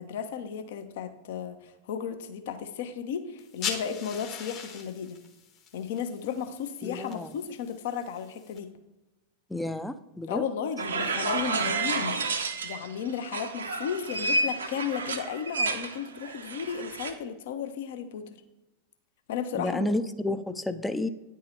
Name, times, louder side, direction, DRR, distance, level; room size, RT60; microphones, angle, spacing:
voice 1, 0.0-5.2 5.7-8.7 10.2-12.1 12.6-18.4 19.3-20.0, left 7 dB, 55° left, 8 dB, 0.6 m, -34 dB
sound 1, 3.4-8.6, left 6 dB, 35° left, 1.0 m, -41 dB
voice 2, 6.8-7.3 9.5-10.4 19.5-21.1, left 2 dB, 5° left, 11 dB, 0.4 m, -31 dB
sound 2, 10.8-12.9 13.2-17.1, right 3 dB, 70° right, 0.6 m, -30 dB
9.4 x 3.7 x 4.3 m, 0.98 s
figure-of-eight pair, 90°, 0 cm